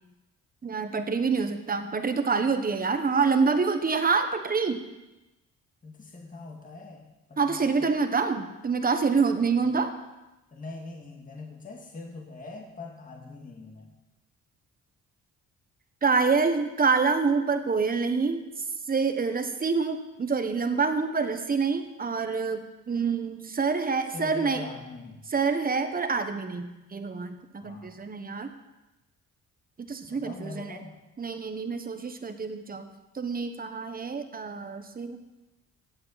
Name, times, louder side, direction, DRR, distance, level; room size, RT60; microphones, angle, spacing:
voice 1, 0.6-4.8 7.4-10.0 16.0-18.4 18.9-24.6 25.3-28.5 29.9-30.8 31.2-32.9 33.1-35.2, right 5 dB, 30° right, 8 dB, 1.2 m, -26 dB
voice 2, 5.8-7.9 9.6-9.7 10.5-13.9 24.0-25.2 27.6-28.0 30.1-31.0, left 3 dB, 25° left, 0 dB, 1.8 m, -42 dB
17.0 x 7.8 x 4.1 m, 1.0 s
cardioid pair, 90°, 30 cm